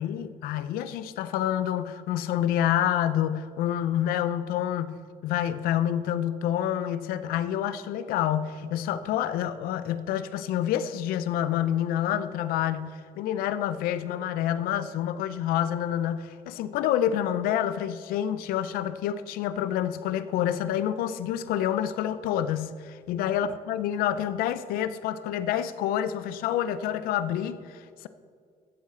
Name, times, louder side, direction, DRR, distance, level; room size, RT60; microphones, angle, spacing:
voice 1, 0.0-28.1, left 10 dB, 85° left, 13 dB, 0.6 m, -28 dB
14.5 x 7.3 x 3.8 m, 2.1 s
cardioid pair, 90°, 15 cm